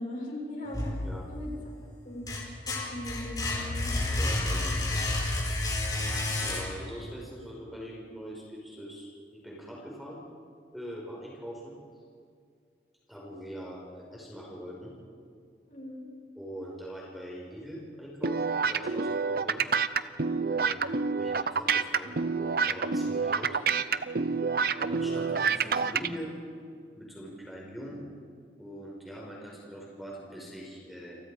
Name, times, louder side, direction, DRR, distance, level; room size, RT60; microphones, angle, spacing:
voice 1, 0.0-0.9 1.3-1.5 2.0-2.2 2.7-3.9 15.7-16.1, left 1 dB, 45° left, -2 dB, 7.3 m, -39 dB
sound 1, 0.7-1.6 2.0-7.0, left 2 dB, 20° left, 4.3 m, -30 dB
voice 2, 4.2-4.8 6.4-9.1 9.4-10.2 10.7-11.8 13.1-14.9 16.4-19.7 20.5-23.6 24.0-24.2 24.8-26.3 26.9-28.0 28.6-31.2, equal, ahead, -3 dB, 5.3 m, -42 dB
sound 2, 18.2-26.1, right 5 dB, 55° right, 0.8 m, -28 dB
29.5 x 27.5 x 5.1 m, 2.2 s
head